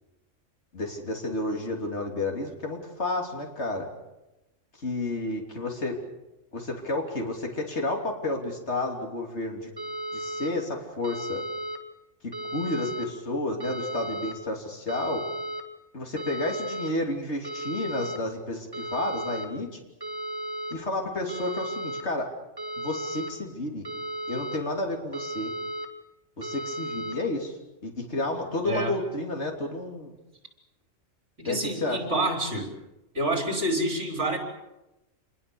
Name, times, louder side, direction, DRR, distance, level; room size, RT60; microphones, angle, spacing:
voice 1, 0.7-3.9 4.8-6.0 6.5-9.7 10.1-11.4 12.5-15.2 15.9-19.7 20.7-22.3 22.8-23.9 24.3-25.5 26.4-27.5 27.8-30.1 31.5-32.0, left 2 dB, 55° left, 2 dB, 3.6 m, -31 dB
sound 1, 9.8-10.5 11.0-11.8 12.3-13.1 13.6-14.3 14.9-15.6 16.2-16.9 17.4-18.2 18.7-19.5 20.0-20.7 21.3-22.0 22.6-23.3 23.8-24.6 25.1-25.9 26.4-27.1, right 1 dB, 15° right, 2.4 m, -34 dB
voice 2, 28.6-29.0 31.4-32.7 33.1-34.4, right 1 dB, 60° right, 3 dB, 5.1 m, -27 dB
27.5 x 21.5 x 7.1 m, 0.94 s
omnidirectional pair, 1.4 m